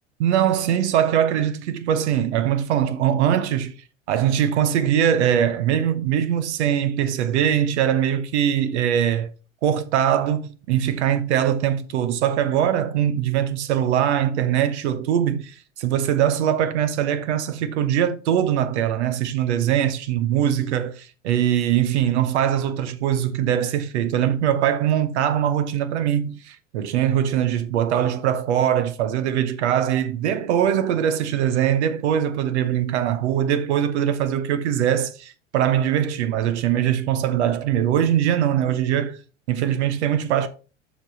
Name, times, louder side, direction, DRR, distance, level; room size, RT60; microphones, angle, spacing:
voice 1, 0.2-3.7 4.1-9.3 9.6-39.2 39.5-40.5, right 10 dB, 65° right, 0.9 m, -22 dB
7.3 x 5.1 x 4.1 m
figure-of-eight pair, 85°, 38 cm